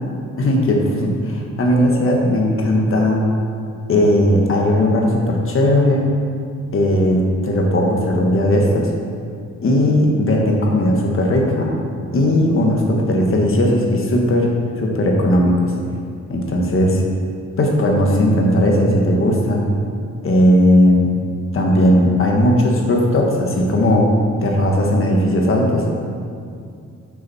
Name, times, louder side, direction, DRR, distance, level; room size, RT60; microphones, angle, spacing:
voice 1, 0.4-3.2 3.9-6.1 6.7-8.9 9.6-11.7 12.1-14.5 14.8-15.7 16.3-17.0 17.6-19.7 20.2-21.1 21.5-24.1 24.4-25.9, left 1 dB, 45° left, 0 dB, 1.4 m, -17 dB
10.5 x 6.3 x 4.2 m, 2.4 s
wide cardioid pair, 175°, 29 cm